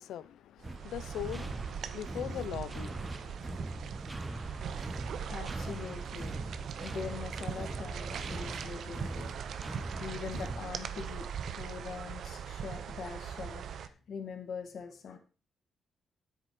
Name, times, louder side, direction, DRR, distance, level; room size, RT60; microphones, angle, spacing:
voice 1, 0.0-3.3, left 11 dB, 90° left, 0.7 m, -41 dB
sound 1, 0.6-11.4, right 1 dB, 15° right, 1.3 m, -42 dB
sound 2, 0.6-13.9, right 8 dB, 70° right, 0.9 m, -41 dB
voice 2, 5.1-6.4 6.7-15.2, left 6 dB, 60° left, 2.1 m, -43 dB
9.9 x 8.3 x 5.0 m
cardioid pair, 110°, 0 cm